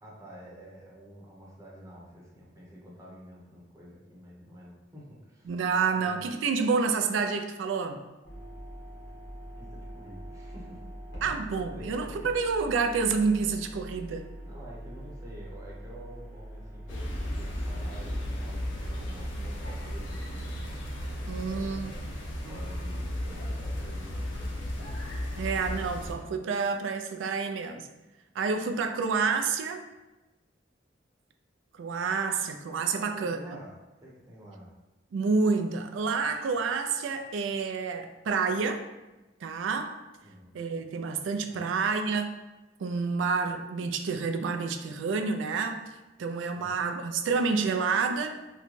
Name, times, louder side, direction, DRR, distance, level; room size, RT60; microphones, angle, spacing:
voice 1, 0.0-5.5 5.9-6.3 9.6-10.9 11.5-12.3 14.4-20.6 21.3-22.1 22.5-24.9 32.9-33.7 34.0-34.7 40.2-40.6 41.6-41.8 46.6-46.8, right 1 dB, 15° right, -5 dB, 0.8 m, -49 dB
voice 2, 5.5-8.0 11.2-14.3 21.3-21.9 22.5-22.6 25.4-27.9 28.4-29.9 31.7-33.6 35.1-38.8 39.4-40.0 40.5-42.3 42.8-45.8 46.2-48.4, right 5 dB, 90° right, 6 dB, 0.3 m, -29 dB
sound 1, 8.2-18.2, equal, 70° left, 1.3 m, -43 dB
sound 2, 16.9-26.2, equal, 85° left, 0.6 m, -35 dB
3.7 x 2.1 x 3.1 m, 1.1 s
head